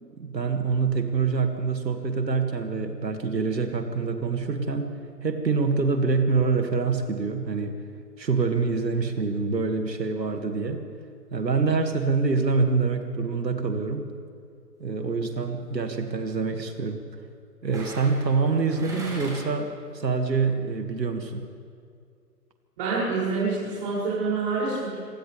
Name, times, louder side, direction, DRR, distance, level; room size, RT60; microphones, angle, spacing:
voice 1, 0.0-7.7 8.2-10.8 11.3-14.1 14.8-17.0 17.6-21.5, right 4 dB, 80° right, 4 dB, 2.6 m, -26 dB
sound 1, 15.1-15.4 17.7-19.7 20.0-20.1, right 1 dB, 5° right, 7.2 m, -40 dB
voice 2, 22.8-25.0, right 4 dB, 30° right, -7 dB, 7.4 m, -27 dB
27.0 x 26.0 x 3.6 m, 2.3 s
figure-of-eight pair, 145°, 49 cm